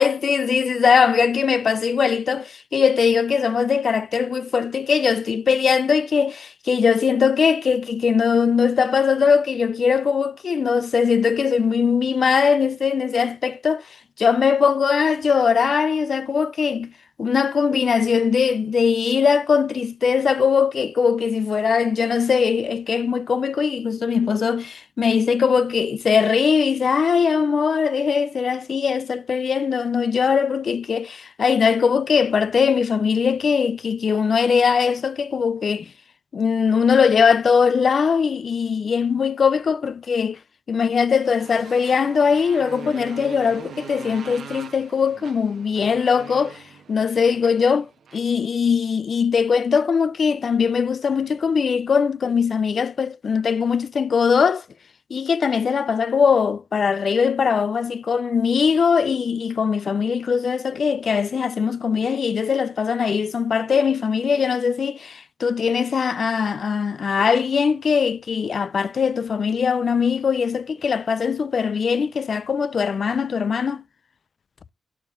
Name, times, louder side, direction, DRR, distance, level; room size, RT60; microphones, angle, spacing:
voice 1, 0.0-13.9 14.2-16.9 17.2-35.9 36.3-40.4 40.7-46.6 46.9-54.6 55.1-73.8, left 6 dB, 60° left, 0.3 m, -20 dB
Motorcycle, 40.9-48.3, right 6 dB, 75° right, 1.1 m, -42 dB
10.5 x 6.3 x 2.5 m
supercardioid pair, 45°, 0 cm